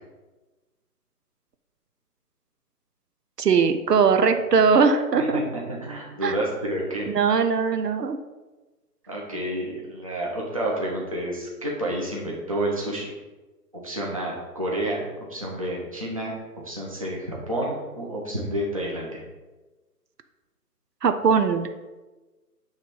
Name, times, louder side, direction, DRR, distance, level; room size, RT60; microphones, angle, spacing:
voice 1, 3.4-5.4 6.2-6.3 7.1-8.2 21.0-21.7, right 5 dB, 80° right, 8 dB, 0.8 m, -20 dB
voice 2, 5.1-7.1 7.3-7.4 9.1-13.1 13.7-16.3 16.6-19.2, right 1 dB, 20° right, -4 dB, 0.9 m, -30 dB
9.0 x 3.3 x 5.4 m, 1.2 s
hypercardioid pair, 175°, 47 cm